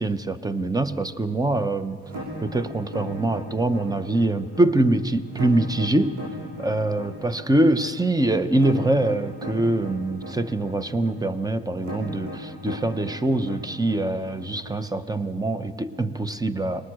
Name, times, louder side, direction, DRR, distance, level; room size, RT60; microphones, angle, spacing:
voice 1, 0.0-2.0 2.4-6.1 6.6-16.9, right 2 dB, 10° right, 12 dB, 0.8 m, -24 dB
sound 1, 2.0-14.9, right 1 dB, 70° right, 7.7 m, -38 dB
23.0 x 19.5 x 6.3 m, 2.3 s
cardioid pair, 90°, 30 cm